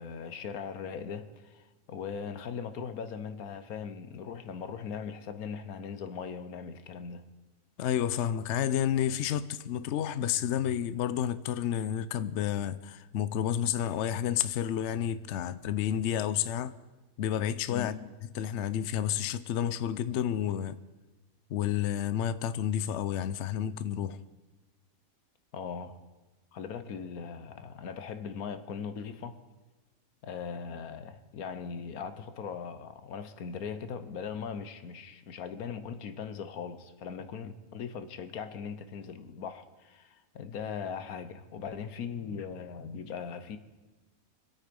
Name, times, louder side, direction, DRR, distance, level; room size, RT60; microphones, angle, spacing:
voice 1, 0.0-7.3 17.7-18.0 25.5-26.1 26.5-29.4 30.2-43.6, left 6 dB, 80° left, 1.4 m, -39 dB
voice 2, 7.8-16.8 17.2-18.1 18.3-20.8 21.5-24.2, left 10 dB, 60° left, 0.8 m, -30 dB
26.0 x 8.8 x 5.3 m
omnidirectional pair, 1.5 m